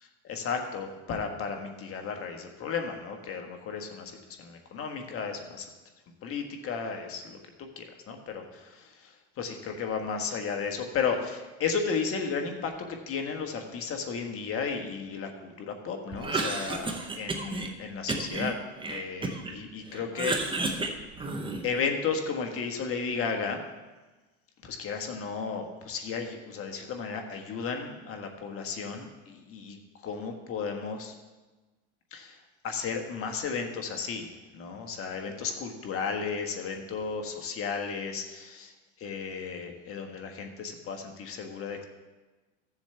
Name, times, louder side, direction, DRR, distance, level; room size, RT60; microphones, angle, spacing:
voice 1, 0.2-5.7 6.2-16.9 17.2-18.6 18.9-20.9 21.6-23.6 24.6-29.8 30.0-31.1 32.1-32.4 32.6-34.3 34.5-38.7 39.0-41.8, left 5 dB, 40° left, 3 dB, 1.5 m, -34 dB
Cough, 16.1-17.7 18.1-19.6 19.9-21.8, right 3 dB, 15° right, 0.9 m, -32 dB
14.5 x 7.2 x 3.4 m, 1.2 s
supercardioid pair, 115°, 36 cm